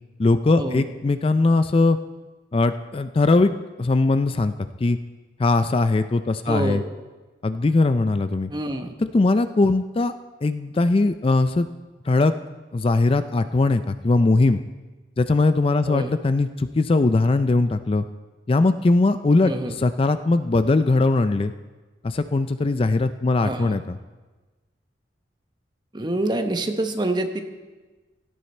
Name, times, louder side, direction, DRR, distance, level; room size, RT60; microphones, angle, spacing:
voice 1, 0.2-2.0 2.5-3.5 3.8-4.5 4.8-5.0 5.4-6.8 7.4-8.5 9.1-10.2 10.4-11.7 12.0-12.3 12.7-14.6 15.2-18.0 18.5-21.5 22.0-24.0, left 3 dB, 30° left, 11 dB, 0.4 m, -20 dB
voice 2, 6.5-6.9 8.5-8.9 15.9-16.1 19.4-19.7 23.4-23.8 25.9-27.4, right 1 dB, 25° right, 6 dB, 1.0 m, -26 dB
16.5 x 13.0 x 4.3 m, 1.3 s
head